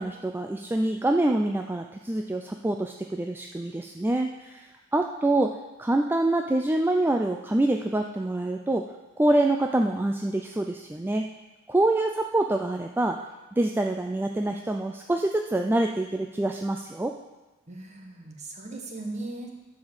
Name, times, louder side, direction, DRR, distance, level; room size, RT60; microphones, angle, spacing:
voice 1, 0.0-5.5 5.8-8.9 9.2-11.3 11.7-13.2 13.6-17.1, right 1 dB, 10° right, 3 dB, 0.4 m, -26 dB
voice 2, 17.7-19.5, right 2 dB, 35° right, 1 dB, 1.5 m, -38 dB
11.0 x 5.0 x 7.1 m, 1.1 s
head